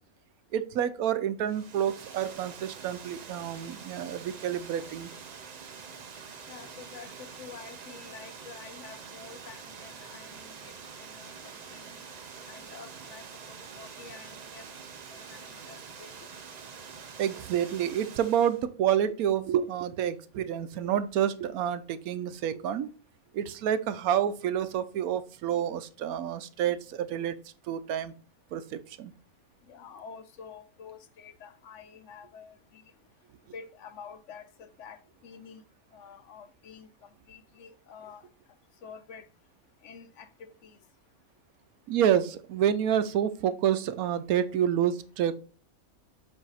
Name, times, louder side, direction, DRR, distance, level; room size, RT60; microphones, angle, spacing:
voice 1, 0.5-5.1 17.2-22.9 23.3-27.4 27.7-28.1 28.5-29.1 41.9-45.3, right 9 dB, 90° right, 1.1 m, -28 dB
Water, 1.4-18.6, right 5 dB, 55° right, 0.4 m, -46 dB
voice 2, 6.5-12.0 12.4-14.6 15.1-16.3 29.6-32.8 33.5-35.6 35.9-38.3 38.8-39.3 39.8-40.8, left 6 dB, 65° left, 1.0 m, -48 dB
7.5 x 2.7 x 5.4 m
omnidirectional pair, 1.5 m